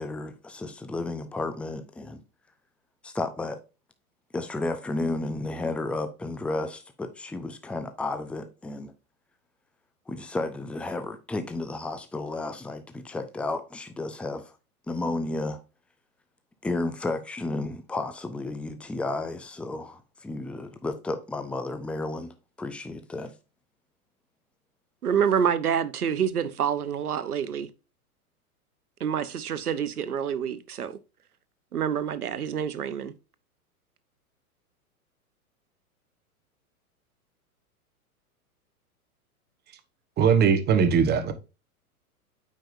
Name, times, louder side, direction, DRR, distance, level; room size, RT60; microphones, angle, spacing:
voice 1, 0.0-2.2 3.0-3.6 4.3-8.9 10.1-14.5 14.9-15.6 16.6-23.3, left 2 dB, 5° left, 0.6 m, -32 dB
voice 2, 25.0-27.7 29.0-31.0 31.7-33.1, right 8 dB, 75° right, 1.0 m, -27 dB
voice 3, 40.2-41.3, right 6 dB, 20° right, 1.2 m, -20 dB
8.8 x 5.3 x 2.6 m
figure-of-eight pair, 105°, 45 cm